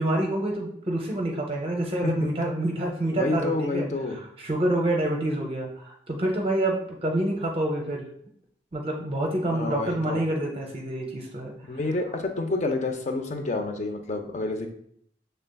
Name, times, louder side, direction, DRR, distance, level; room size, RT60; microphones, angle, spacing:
voice 1, 0.0-8.1 8.7-11.5, right 1 dB, 30° right, 0 dB, 0.6 m, -27 dB
voice 2, 3.1-4.2 9.4-10.2 11.6-14.7, left 2 dB, 40° left, 5 dB, 0.5 m, -29 dB
6.6 x 3.3 x 2.2 m, 0.67 s
head